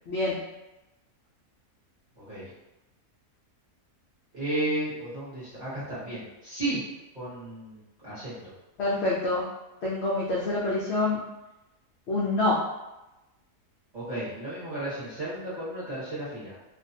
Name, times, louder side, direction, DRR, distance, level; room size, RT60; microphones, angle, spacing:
voice 1, 0.1-0.4 8.8-9.4 9.8-11.2 12.1-12.6, left 2 dB, 85° left, -6 dB, 0.5 m, -26 dB
voice 2, 4.3-6.8 7.1-8.5 13.9-16.6, right 1 dB, 35° right, -11 dB, 0.9 m, -33 dB
2.5 x 2.2 x 2.6 m, 1.0 s
omnidirectional pair, 1.7 m